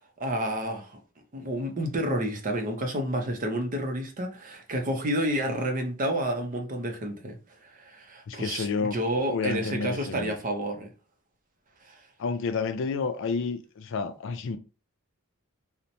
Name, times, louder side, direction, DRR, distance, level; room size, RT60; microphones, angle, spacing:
voice 1, 0.2-1.0 1.3-7.4 7.8-10.9 11.9-12.0, right 1 dB, 40° right, 0.6 m, -30 dB
voice 2, 8.3-10.4 12.2-14.6, left 5 dB, 60° left, 0.4 m, -30 dB
2.8 x 2.1 x 2.6 m
head